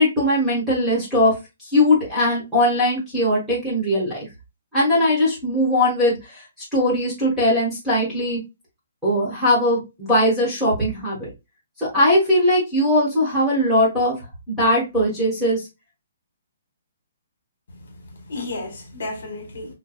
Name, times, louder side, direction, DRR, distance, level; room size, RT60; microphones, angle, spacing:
voice 1, 0.0-1.3 1.6-4.2 4.7-6.4 6.7-8.4 9.0-11.3 11.8-14.1 14.5-15.6, left 1 dB, ahead, 1.2 m, -20 dB
voice 2, 17.7-19.7, left 2 dB, 60° left, 1.6 m, -33 dB
4.6 x 2.2 x 2.2 m
hypercardioid pair, 175°, 0 cm